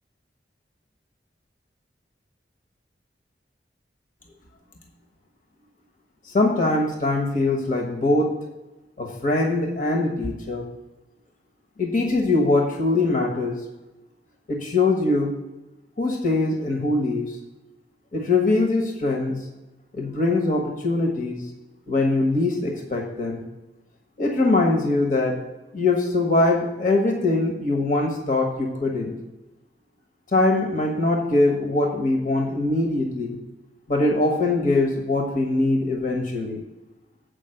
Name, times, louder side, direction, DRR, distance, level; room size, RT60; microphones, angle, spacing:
voice 1, 6.3-8.3 9.0-10.6 11.8-13.6 14.5-15.3 16.0-17.4 18.1-19.4 19.9-21.4 21.9-23.4 24.2-25.4 25.7-29.2 30.3-33.4 33.9-36.6, left 2 dB, 50° left, 1 dB, 1.3 m, -22 dB
8.1 x 5.3 x 6.5 m, 1.1 s
head